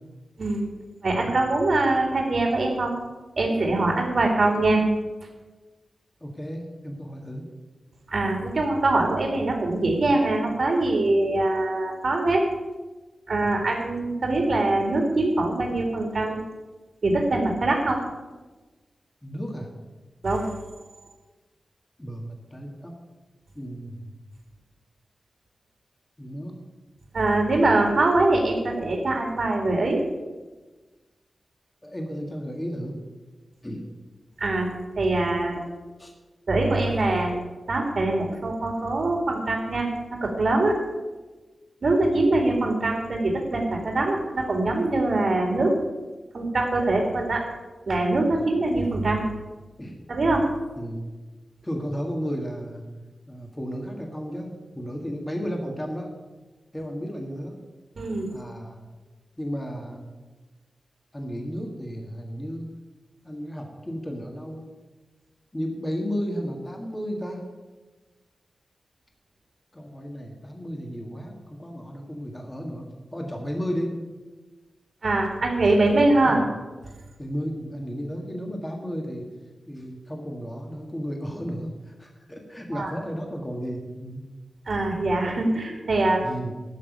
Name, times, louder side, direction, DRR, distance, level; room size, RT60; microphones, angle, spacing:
voice 1, 1.0-2.9 3.4-4.8 8.1-12.5 13.3-16.4 17.0-18.0 20.2-20.5 27.1-30.0 34.4-34.7 35.0-35.6 36.5-37.3 37.7-40.8 41.8-45.8 46.3-47.4 47.9-49.2 50.1-50.4 58.0-58.3 75.0-76.4 82.7-82.9 84.7-86.2, right 2 dB, 55° right, 1 dB, 2.3 m, -23 dB
voice 2, 6.2-7.5 13.4-13.5 19.2-19.7 22.0-22.9 23.5-24.1 26.2-26.6 31.8-33.0 33.6-33.8 36.0-36.1 48.4-48.5 49.8-50.0 50.8-51.1 51.6-52.8 53.3-56.1 56.7-57.6 58.3-58.9 59.4-60.1 61.1-62.7 63.2-64.7 65.5-67.4 69.7-73.9 76.2-76.4 77.2-79.3 79.7-84.2 86.2-86.5, equal, 15° left, 1 dB, 1.6 m, -33 dB
12.5 x 6.1 x 9.2 m, 1.2 s
wide cardioid pair, 160°, 0 cm